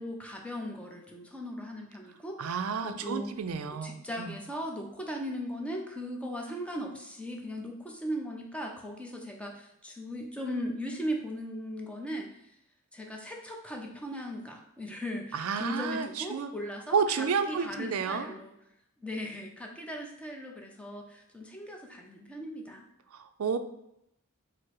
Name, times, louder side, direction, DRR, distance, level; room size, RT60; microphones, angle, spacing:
voice 1, 0.0-2.6 2.8-3.3 3.8-12.3 12.9-18.5 19.0-22.8, equal, 5° left, 1 dB, 0.6 m, -38 dB
voice 2, 2.4-4.4 15.3-16.5 16.9-18.4 23.1-23.6, right 6 dB, 75° right, 8 dB, 0.4 m, -31 dB
4.6 x 2.0 x 4.5 m, 0.79 s
head